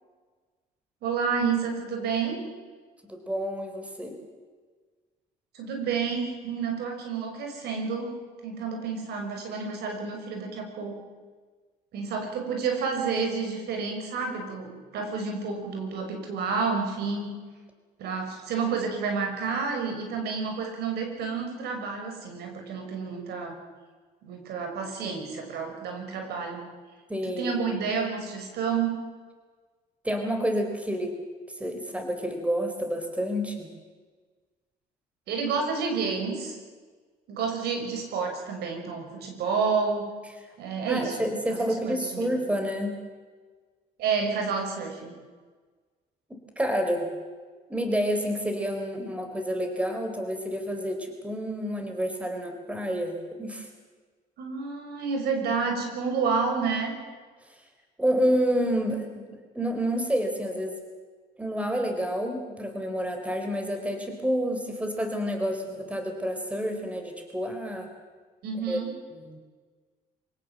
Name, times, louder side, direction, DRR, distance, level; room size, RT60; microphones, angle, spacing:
voice 1, 1.0-2.4 5.5-8.1 8.4-11.0 11.9-17.3 18.0-23.6 24.2-26.6 27.2-28.9 35.3-36.6 37.3-40.1 40.6-41.2 41.5-42.3 44.0-45.1 54.4-56.9 68.4-68.9, right 5 dB, 75° right, 3 dB, 6.5 m, -30 dB
voice 2, 3.1-4.2 27.1-27.7 30.0-31.1 31.6-33.7 40.9-42.9 46.3-47.1 47.7-53.7 57.5-57.6 58.0-60.8 61.4-67.9 68.7-68.8 69.2-69.4, equal, 10° right, 5 dB, 4.3 m, -29 dB
26.5 x 17.5 x 7.6 m, 1.4 s
cardioid pair, 110°, 17 cm